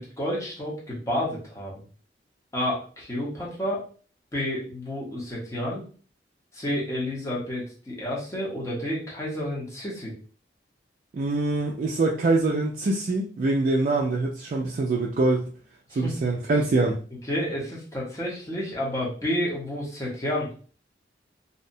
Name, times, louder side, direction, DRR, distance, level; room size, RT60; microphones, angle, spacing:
voice 1, 0.0-1.7 2.5-3.8 4.3-5.8 6.5-10.1 15.9-16.3 17.2-20.5, left 1 dB, 15° left, -5 dB, 0.7 m, -30 dB
voice 2, 11.1-15.5 15.9-17.0, right 2 dB, 50° right, -2 dB, 0.3 m, -24 dB
2.7 x 2.1 x 2.6 m, 0.41 s
head